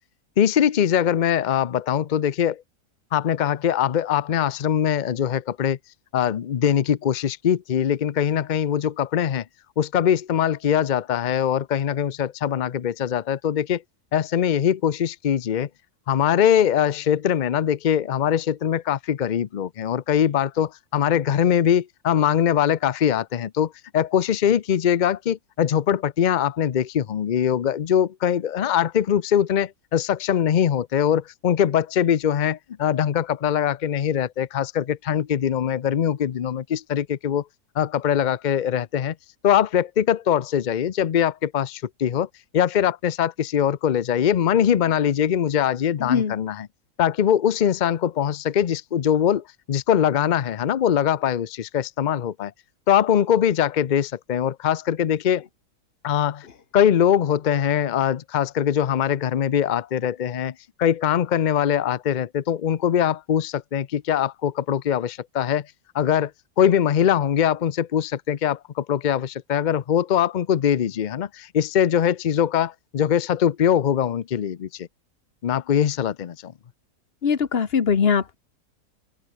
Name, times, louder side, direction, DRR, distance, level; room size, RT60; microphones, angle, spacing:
voice 1, 0.4-2.6 3.1-5.8 6.1-9.4 9.8-13.8 14.1-15.7 16.1-37.4 37.8-39.1 39.4-42.3 42.5-46.7 47.0-52.5 52.9-55.5 56.0-56.5 56.7-60.5 60.8-65.7 65.9-66.3 66.6-74.9 75.4-76.5, left 9 dB, 70° left, 0.4 m, -22 dB
voice 2, 46.0-46.3 77.2-78.3, left 6 dB, 40° left, 1.3 m, -21 dB
open air
omnidirectional pair, 1.6 m